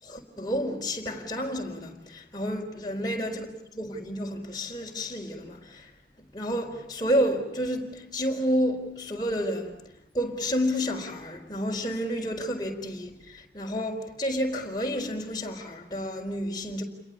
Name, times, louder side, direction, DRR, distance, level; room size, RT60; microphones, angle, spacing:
voice 1, 0.0-3.5 3.7-5.9 6.2-9.9 10.1-16.8, equal, 25° left, 4.4 m, -30 dB
30.0 x 22.5 x 8.3 m
head